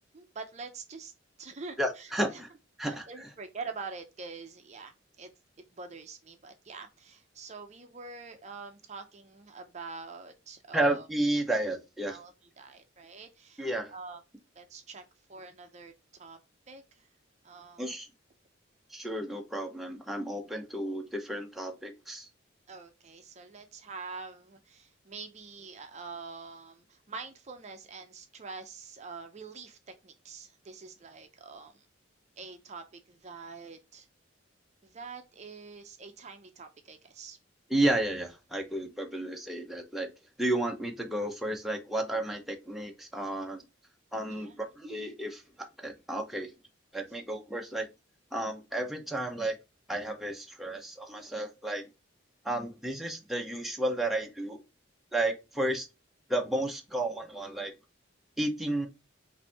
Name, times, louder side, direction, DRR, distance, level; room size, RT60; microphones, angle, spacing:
voice 1, 0.1-1.1 1.4-2.4 2.8-5.3 5.7-11.1 12.1-14.2 14.6-15.9 16.2-16.4 16.7-17.1 17.4-17.9 22.7-31.9 32.4-34.1 34.8-37.4 44.3-44.7, right 4 dB, 35° right, 0.6 m, -45 dB
voice 2, 1.8-2.5 2.8-3.1 10.7-12.2 13.6-13.9 17.8-18.1 18.9-22.3 37.7-40.1 40.4-43.6 44.1-46.5 46.9-47.8 48.3-49.6 49.9-51.9 52.4-54.6 55.1-55.9 56.3-57.7 58.4-58.9, right 1 dB, ahead, 0.7 m, -32 dB
5.6 x 2.7 x 3.3 m
head